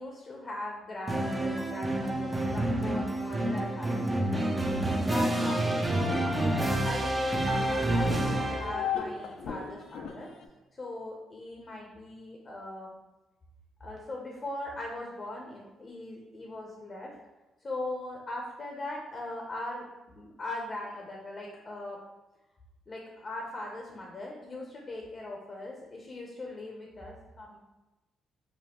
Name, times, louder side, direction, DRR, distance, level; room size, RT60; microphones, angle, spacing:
voice 1, 0.0-10.3 10.8-13.0 13.8-17.1 17.6-19.8 20.1-22.0 22.9-27.6, left 1 dB, 35° left, -1 dB, 0.6 m, -40 dB
sound 1, 1.1-8.9, right 1 dB, 20° right, 0.5 m, -28 dB
sound 2, 5.4-10.5, left 7 dB, 75° left, 0.4 m, -38 dB
5.1 x 2.0 x 2.9 m, 1.1 s
cardioid pair, 90°, 0 cm